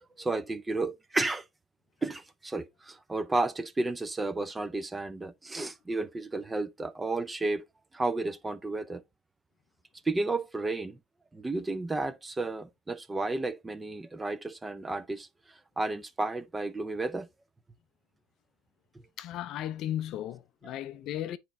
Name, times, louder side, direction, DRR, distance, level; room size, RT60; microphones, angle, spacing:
voice 1, 0.2-1.4 2.0-7.6 7.9-9.0 10.0-11.0 11.3-15.3 15.8-17.3, right 2 dB, 10° right, 0.6 m, -32 dB
voice 2, 19.2-21.4, left 12 dB, 45° left, 0.5 m, -35 dB
9.4 x 4.3 x 2.6 m
supercardioid pair, 145°, 0 cm